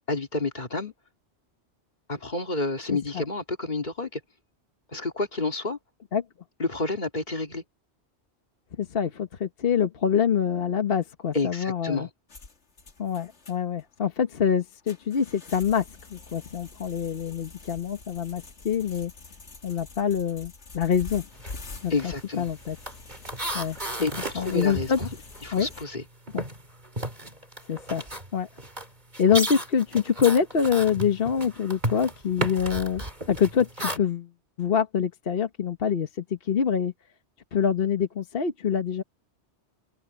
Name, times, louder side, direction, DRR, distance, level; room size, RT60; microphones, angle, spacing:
voice 1, 0.1-0.9 2.1-4.2 4.9-5.8 6.6-7.6 11.3-12.1 21.9-22.5 24.0-25.1 25.4-26.0, left 3 dB, 40° left, 2.7 m, -29 dB
voice 2, 8.8-12.1 13.0-15.8 16.1-19.1 19.6-21.2 21.8-22.8 23.5-23.8 24.3-25.0 25.5-25.7 27.7-28.0 28.3-28.5 29.2-33.0 33.3-34.3 34.6-36.9 37.5-39.0, left 7 dB, 55° left, 1.3 m, -25 dB
sound 1, 12.3-25.8, left 3 dB, 80° left, 2.2 m, -46 dB
sound 2, 21.3-21.6 21.9-26.0 26.3-34.0, right 1 dB, 40° right, 3.7 m, -34 dB
omnidirectional pair, 1.2 m